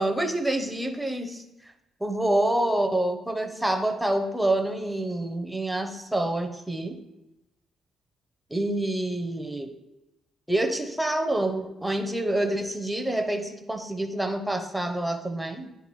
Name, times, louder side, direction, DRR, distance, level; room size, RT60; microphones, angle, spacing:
voice 1, 0.0-1.7 2.0-7.0 8.5-9.7 10.5-15.7, right 1 dB, 5° right, 5 dB, 0.7 m, -27 dB
9.9 x 3.5 x 3.1 m, 0.96 s
cardioid pair, 90°, 0 cm